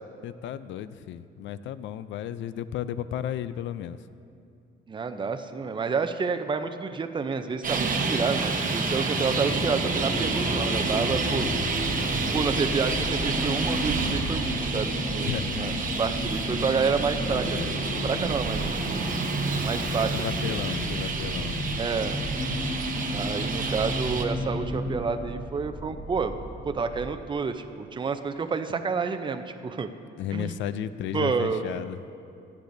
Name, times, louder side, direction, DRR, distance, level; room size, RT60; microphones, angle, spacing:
voice 1, 0.2-4.0 15.2-15.9 16.9-18.0 20.1-21.7 30.2-32.0, left 10 dB, 70° left, 14 dB, 0.4 m, -34 dB
voice 2, 4.9-11.5 12.3-15.7 16.0-17.8 18.0-19.0 19.6-21.0 21.8-22.2 23.1-26.3 26.6-29.9 30.3-30.6 31.1-31.6, right 5 dB, 25° right, 8 dB, 0.5 m, -29 dB
Traffic noise roadway noise, 7.6-24.2, right 4 dB, 45° right, 1.0 m, -29 dB
sound 1, 9.2-25.0, left 1 dB, 35° left, 1.5 m, -33 dB
sound 2, 11.5-27.1, right 1 dB, 15° left, 1.4 m, -40 dB
15.0 x 8.4 x 2.6 m, 2.5 s
cardioid pair, 90°, 20 cm